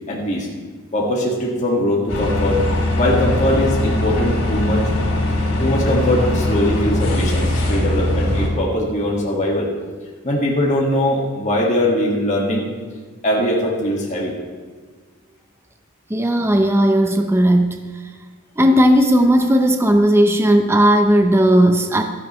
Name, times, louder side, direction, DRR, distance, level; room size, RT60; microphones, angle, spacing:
voice 1, 0.1-0.5 0.9-2.6 2.9-4.9 5.6-9.7 10.2-12.7 13.2-14.3, left 1 dB, 35° left, -3 dB, 1.9 m, -20 dB
sound 1, 2.1-8.5, left 1 dB, 85° left, 3.9 m, -20 dB
voice 2, 16.1-17.8 18.6-22.0, equal, 10° right, 4 dB, 0.6 m, -15 dB
15.5 x 13.5 x 3.2 m, 1.5 s
head